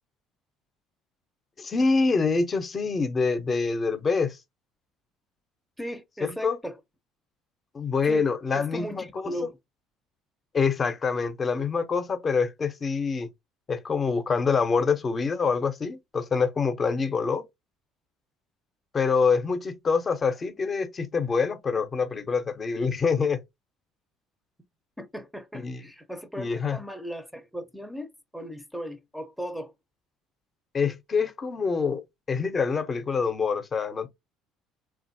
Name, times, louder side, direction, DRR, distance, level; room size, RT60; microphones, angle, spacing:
voice 1, 1.6-4.4 6.2-6.6 7.7-9.0 10.5-13.3 13.7-17.4 18.9-23.4 25.5-25.8 26.4-26.8 30.7-32.0 32.3-34.1, left 5 dB, 35° left, 0.7 m, -25 dB
voice 2, 5.8-6.8 8.0-8.2 8.5-9.6 25.0-29.7, equal, ahead, 0.6 m, -37 dB
3.3 x 2.4 x 2.7 m
supercardioid pair, 80°, 0 cm